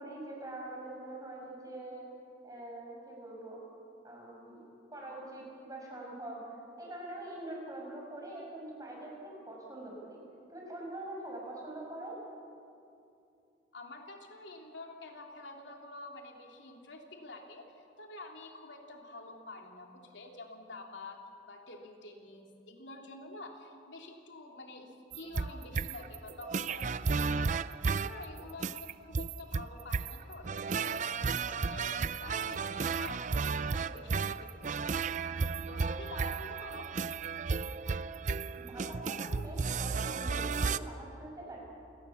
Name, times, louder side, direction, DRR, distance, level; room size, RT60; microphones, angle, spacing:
voice 1, 0.0-2.1 2.4-3.6 4.0-4.6 4.9-10.2 10.5-12.2 38.6-41.6, right 1 dB, 20° right, -2 dB, 5.9 m, -44 dB
voice 2, 13.7-35.1 35.7-36.9, left 2 dB, 85° left, 2 dB, 2.9 m, -48 dB
sound 1, 25.1-40.8, right 5 dB, 40° right, 0.5 m, -33 dB
28.0 x 19.0 x 7.1 m, 2.6 s
head